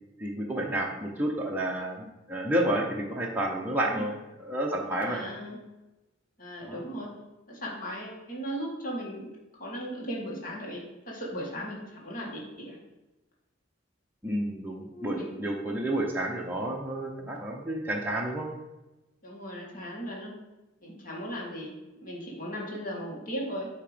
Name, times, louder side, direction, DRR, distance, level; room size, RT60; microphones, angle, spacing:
voice 1, 0.2-5.3 6.6-6.8 14.2-18.5, right 1 dB, 10° right, -3 dB, 0.7 m, -30 dB
voice 2, 3.8-4.1 5.1-5.6 6.4-7.1 7.5-9.3 9.6-12.8 14.9-15.4 19.2-20.4 20.8-21.7 22.0-23.7, equal, 45° left, -3 dB, 1.8 m, -37 dB
8.7 x 2.9 x 5.0 m, 1.0 s
head